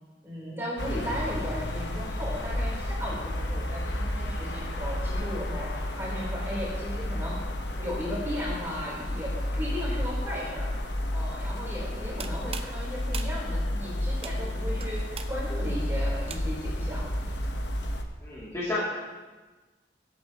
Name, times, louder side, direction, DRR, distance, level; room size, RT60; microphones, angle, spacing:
voice 1, 0.2-7.4 7.8-10.7 11.1-17.5, equal, 15° right, -7 dB, 4.0 m, -36 dB
sound 1, 0.8-18.0, left 1 dB, 85° left, 1.2 m, -31 dB
voice 2, 11.9-12.3 18.2-18.8, left 2 dB, 15° left, -11 dB, 2.9 m, -33 dB
sound 2, 12.0-16.8, right 6 dB, 35° right, 0.6 m, -43 dB
23.0 x 8.5 x 3.1 m, 1.3 s
head